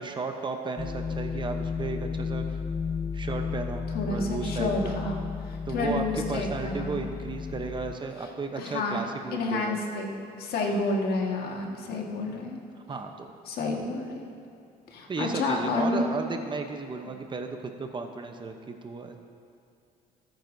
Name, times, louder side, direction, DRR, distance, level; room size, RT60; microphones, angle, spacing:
voice 1, 0.0-2.6 3.1-5.0 5.6-9.8 10.7-10.8 12.9-13.3 15.1-19.3, right 4 dB, 30° right, 5 dB, 0.8 m, -34 dB
sound 1, 0.8-7.9, left 5 dB, 15° left, 0.3 m, -33 dB
voice 2, 3.9-7.0 8.6-9.0 9.3-12.6 13.5-14.3 14.9-16.0, left 2 dB, 70° left, 0 dB, 1.7 m, -30 dB
18.5 x 9.1 x 2.7 m, 2.6 s
cardioid pair, 110°, 17 cm